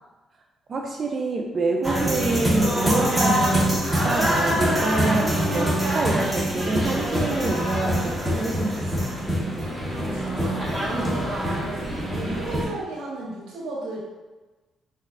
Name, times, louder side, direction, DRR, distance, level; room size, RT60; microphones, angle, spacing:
voice 1, 0.7-8.7 9.0-9.1 11.5-11.6, right 3 dB, 45° right, 1 dB, 0.4 m, -27 dB
sound 1, 1.8-12.6, equal, ahead, 1.5 m, -24 dB
voice 2, 9.9-14.0, right 2 dB, 85° right, -5 dB, 0.9 m, -34 dB
4.0 x 3.3 x 2.4 m, 1.2 s
cardioid pair, 90°, 0 cm